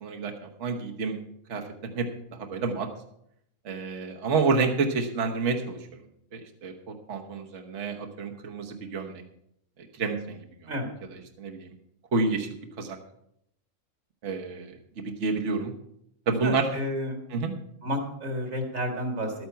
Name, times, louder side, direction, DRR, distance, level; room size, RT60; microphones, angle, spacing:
voice 1, 0.0-1.2 1.5-1.6 1.9-2.9 3.6-6.0 6.3-9.2 9.9-10.4 11.4-11.7 12.1-12.5 12.8-13.0 14.2-14.8 15.0-15.7 16.3-16.7 17.3-17.5, right 4 dB, 65° right, 2 dB, 1.4 m, -29 dB
voice 2, 16.4-17.2 17.8-19.3, equal, 90° right, 3 dB, 2.6 m, -31 dB
12.0 x 9.4 x 5.6 m, 0.74 s
omnidirectional pair, 1.4 m